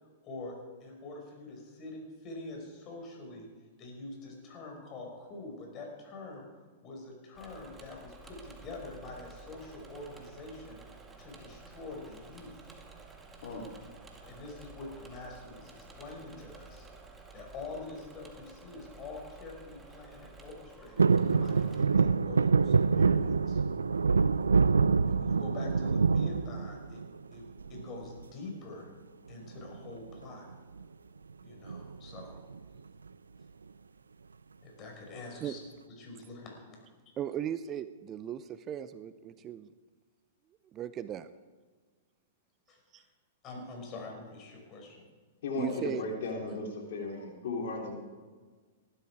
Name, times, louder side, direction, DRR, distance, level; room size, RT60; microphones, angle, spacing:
voice 1, 0.2-3.5 3.8-10.8 11.2-12.5 14.2-16.9 17.3-21.1 21.4-23.6 25.1-27.0 27.3-28.9 29.3-30.5 31.4-32.4 34.6-35.6 36.0-36.9 42.7-43.1 43.4-45.1, left 2 dB, 35° left, 1 dB, 5.3 m, -45 dB
Engine / Mechanisms, 7.3-21.8, right 3 dB, 15° right, 2.1 m, -52 dB
sound 1, 21.0-27.2 27.6-28.2 29.5-29.9 30.1-30.2 30.5-30.8 31.7-32.6 33.1-33.2, right 5 dB, 90° right, 0.4 m, -26 dB
voice 2, 37.2-39.7 40.7-41.3 42.9-43.0 45.6-46.0, right 10 dB, 30° right, 13 dB, 0.6 m, -37 dB
voice 3, 45.4-48.0, left 2 dB, 65° left, 1 dB, 3.3 m, -35 dB
19.0 x 12.5 x 4.8 m, 1.4 s
hypercardioid pair, 115°, 0 cm